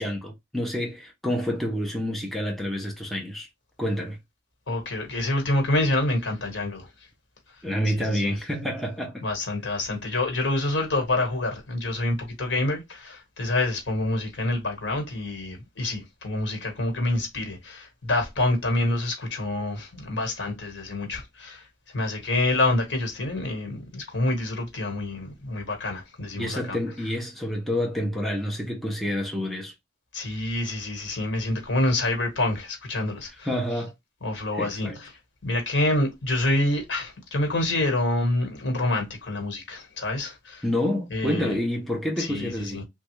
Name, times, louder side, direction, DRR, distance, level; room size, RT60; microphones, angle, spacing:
voice 1, 0.0-3.5 3.8-4.2 7.6-9.2 26.3-29.7 33.4-33.9 34.5-35.0 40.6-42.8, equal, ahead, 0.6 m, -28 dB
voice 2, 4.7-6.9 8.0-8.3 9.2-21.6 21.9-26.8 30.1-33.5 34.2-34.9 35.4-40.6 41.1-41.6 42.2-42.8, left 2 dB, 65° left, 1.2 m, -27 dB
3.1 x 2.2 x 3.0 m
head